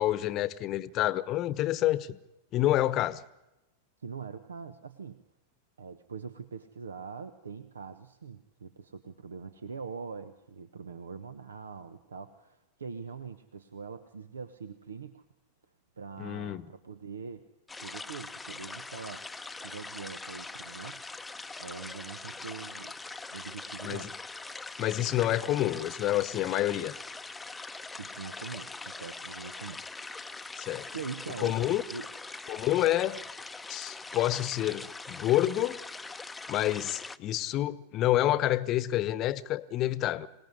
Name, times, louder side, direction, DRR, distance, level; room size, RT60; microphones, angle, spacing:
voice 1, 0.0-2.2 2.5-3.2 16.2-16.7 23.8-24.1 24.8-27.0 30.6-30.9 31.4-31.8 32.5-33.2 33.7-35.8 36.5-40.3, left 14 dB, 35° left, 1.0 m, -28 dB
voice 2, 4.0-5.2 5.8-15.2 16.0-17.4 17.8-21.0 21.6-22.9 23.3-24.1 28.0-29.8 30.9-31.6 31.9-32.1, right 5 dB, 70° right, 1.0 m, -43 dB
sound 1, 17.7-37.2, left 3 dB, 10° left, 0.8 m, -42 dB
26.5 x 18.5 x 9.7 m
figure-of-eight pair, 90°, 0 cm